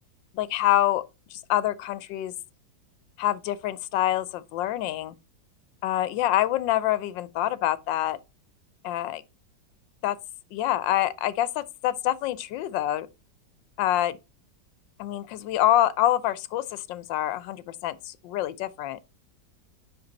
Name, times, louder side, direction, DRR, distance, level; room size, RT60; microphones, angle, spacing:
voice 1, 0.3-1.0 1.3-2.3 3.2-5.1 5.8-8.2 8.8-9.2 10.0-10.2 10.5-13.1 13.8-14.2 15.0-19.0, left 13 dB, 85° left, 1.3 m, -26 dB
5.6 x 5.2 x 4.0 m
omnidirectional pair, 2.0 m